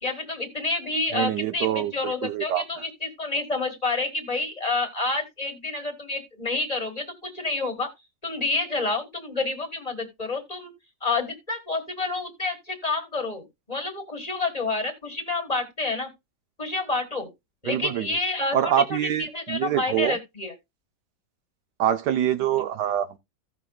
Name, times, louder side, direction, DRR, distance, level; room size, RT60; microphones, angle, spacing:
voice 1, 0.0-7.9 8.2-10.7 11.0-16.1 16.6-17.3 17.6-20.5, left 3 dB, 25° left, 1.6 m, -29 dB
voice 2, 1.1-2.6 17.7-18.1 18.5-20.2 21.8-23.2, right 10 dB, 75° right, 1.3 m, -25 dB
16.0 x 6.0 x 2.3 m
omnidirectional pair, 1.9 m